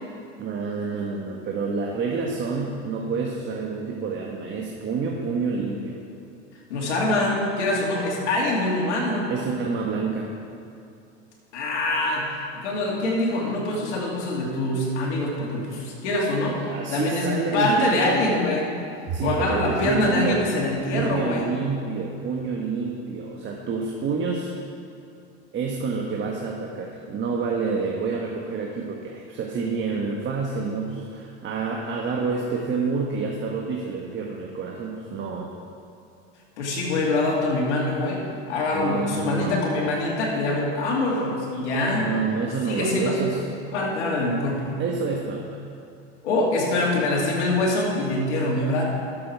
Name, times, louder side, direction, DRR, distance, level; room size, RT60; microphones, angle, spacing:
voice 1, 0.4-6.0 9.3-10.3 16.6-18.2 19.1-20.4 20.9-24.5 25.5-35.5 38.7-39.6 42.0-43.4 44.8-45.6, right 4 dB, 35° right, -1 dB, 1.3 m, -28 dB
voice 2, 6.7-9.3 11.5-16.6 16.9-17.3 17.5-18.7 19.2-21.5 36.6-38.2 38.5-42.1 42.7-43.2 43.7-44.8 46.2-48.8, left 2 dB, 80° left, -2 dB, 2.7 m, -24 dB
12.5 x 7.6 x 4.6 m, 2.4 s
hypercardioid pair, 100°, 34 cm